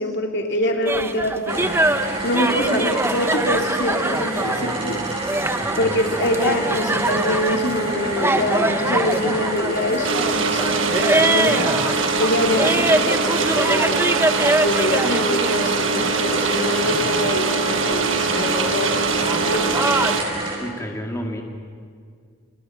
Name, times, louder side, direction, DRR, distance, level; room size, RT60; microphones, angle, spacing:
voice 1, 0.0-1.7 2.2-5.0 5.8-11.7 12.2-14.1 14.6-20.1, left 1 dB, 60° left, 3 dB, 2.8 m, -24 dB
sound 1, 0.9-20.2, right 1 dB, 10° right, 0.9 m, -24 dB
sound 2, 1.5-20.6, right 1 dB, 30° right, 7.9 m, -28 dB
voice 2, 5.6-6.0 20.6-21.4, equal, 15° left, 1 dB, 2.5 m, -31 dB
sound 3, 10.0-20.2, right 5 dB, 70° right, 1.5 m, -23 dB
29.0 x 28.5 x 5.9 m, 2.1 s
head